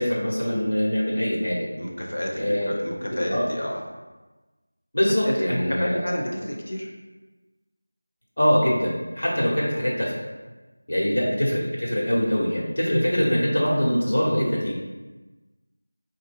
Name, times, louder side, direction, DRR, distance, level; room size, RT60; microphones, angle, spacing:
voice 1, 0.0-1.6 2.3-2.7 3.3-3.5 4.9-6.1 8.4-10.1 10.9-14.8, equal, 85° left, -5 dB, 1.3 m, -23 dB
voice 2, 1.8-3.8 5.2-6.9 11.1-11.3, equal, 50° left, -1 dB, 0.6 m, -30 dB
4.3 x 2.6 x 2.5 m, 1.2 s
figure-of-eight pair, 180°, 0 cm